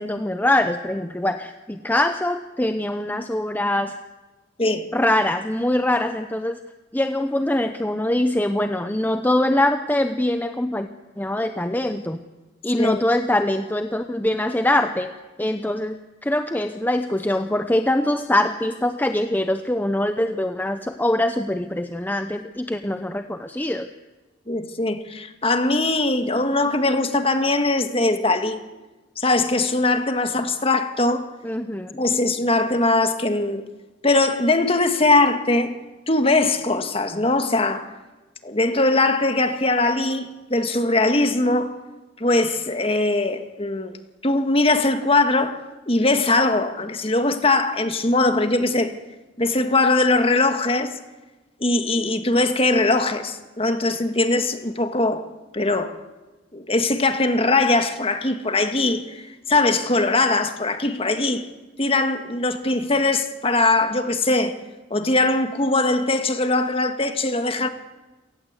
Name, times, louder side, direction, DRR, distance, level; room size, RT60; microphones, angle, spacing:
voice 1, 0.0-4.0 4.9-6.6 6.9-10.9 11.2-12.2 12.6-23.9 31.4-32.0, left 1 dB, 10° left, 0.7 m, -23 dB
voice 2, 24.5-28.6 29.2-31.2 32.0-33.6 34.0-35.8 36.1-37.9 38.4-41.8 42.2-44.0 44.2-45.6 45.9-48.9 49.4-50.9 51.6-55.3 55.5-56.0 56.5-61.5 61.8-64.5 64.9-67.7, left 2 dB, 30° left, 1.8 m, -21 dB
28.5 x 18.5 x 8.2 m
head